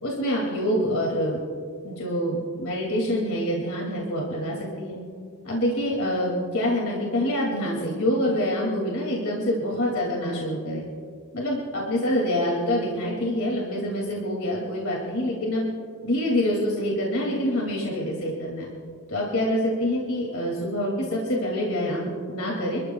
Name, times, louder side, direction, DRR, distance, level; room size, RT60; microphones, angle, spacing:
voice 1, 0.0-1.4 1.8-5.0 5.4-10.8 11.3-15.7 16.0-18.7 19.1-22.8, equal, 65° left, -2 dB, 2.5 m, -26 dB
28.0 x 14.0 x 2.3 m, 2.1 s
head